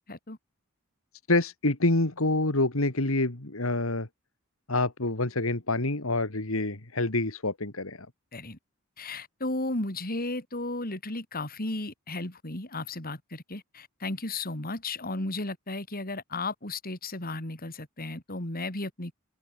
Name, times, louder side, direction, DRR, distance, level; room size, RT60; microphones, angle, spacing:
voice 1, 1.3-4.1 4.7-8.1, left 2 dB, 65° left, 2.5 m, -27 dB
voice 2, 9.0-19.1, left 2 dB, 45° left, 4.0 m, -34 dB
open air
head